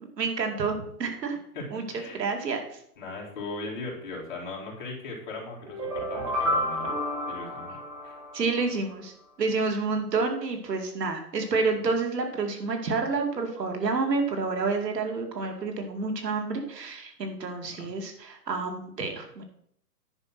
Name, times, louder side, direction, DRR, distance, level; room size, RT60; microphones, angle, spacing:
voice 1, 0.2-1.4 1.7-2.8 8.3-9.1 9.4-19.4, right 4 dB, 85° right, 4 dB, 2.5 m, -29 dB
voice 2, 1.5-2.2 3.0-7.0 7.3-8.2 17.6-17.9, left 3 dB, 30° left, -2 dB, 2.3 m, -38 dB
sound 1, 5.6-8.7, equal, 55° right, 4.9 m, -31 dB
9.8 x 5.5 x 6.0 m, 0.68 s
hypercardioid pair, 175°, 48 cm